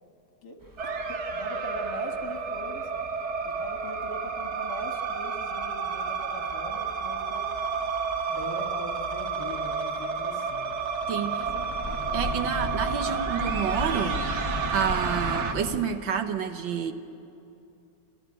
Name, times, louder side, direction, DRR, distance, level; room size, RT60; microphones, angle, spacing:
sound 1, 0.6-15.8, left 1 dB, 15° right, 0.9 m, -39 dB
voice 1, 0.8-2.9 3.4-7.5 8.3-10.8 11.1-12.2, left 1 dB, 60° left, 4 dB, 2.2 m, -41 dB
sound 2, 0.8-15.5, right 5 dB, 50° right, 1.0 m, -31 dB
voice 2, 11.1-11.5 12.1-14.3 14.7-16.9, right 7 dB, 80° right, 8 dB, 1.7 m, -29 dB
29.5 x 13.5 x 8.8 m, 2.7 s
omnidirectional pair, 2.1 m